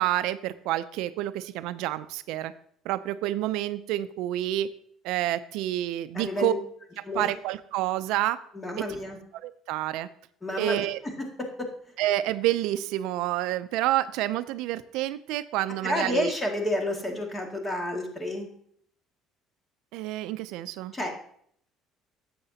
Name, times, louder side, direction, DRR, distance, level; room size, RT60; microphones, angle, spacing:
voice 1, 0.0-2.5 2.9-4.7 5.0-6.5 7.1-8.4 8.8-8.9 9.4-10.1 10.6-11.0 12.0-16.3 19.9-20.9, right 14 dB, 80° right, 13 dB, 0.4 m, -28 dB
voice 2, 6.1-6.6 7.0-7.3 8.5-9.2 10.4-10.8 11.0-11.7 15.8-18.5 20.9-21.1, left 1 dB, 20° left, 2 dB, 2.0 m, -30 dB
10.5 x 7.7 x 2.8 m, 0.63 s
cardioid pair, 110°, 0 cm